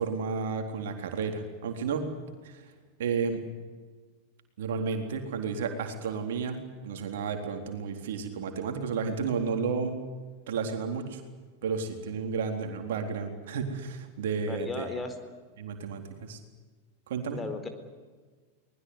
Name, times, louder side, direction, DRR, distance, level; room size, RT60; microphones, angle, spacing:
voice 1, 0.0-2.1 2.4-2.7 3.0-3.4 4.6-10.0 10.5-11.2 11.6-14.9 15.6-16.4 17.1-17.4, right 5 dB, 65° right, 5 dB, 3.9 m, -32 dB
voice 2, 14.5-15.1 17.3-17.7, left 3 dB, 15° left, 7 dB, 4.0 m, -35 dB
24.0 x 20.5 x 9.8 m, 1.4 s
figure-of-eight pair, 90°, 0 cm